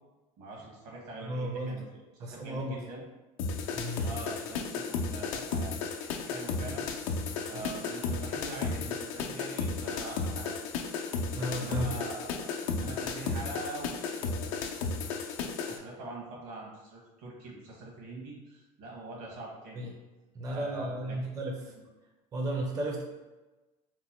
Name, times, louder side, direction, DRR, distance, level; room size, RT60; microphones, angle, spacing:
voice 1, 0.4-3.0 4.0-6.9 7.4-10.7 11.5-19.9 20.5-21.2 21.7-21.8, right 2 dB, 75° right, -2 dB, 1.2 m, -44 dB
voice 2, 1.2-1.8 2.2-2.8 3.7-4.1 7.5-7.6 11.3-12.0 19.8-19.9 20.3-21.5 22.3-23.0, right 1 dB, 20° right, 0 dB, 0.4 m, -34 dB
sound 1, 3.4-15.8, left 4 dB, 90° left, 0.5 m, -34 dB
3.0 x 2.1 x 4.1 m, 1.1 s
cardioid pair, 140°, 16 cm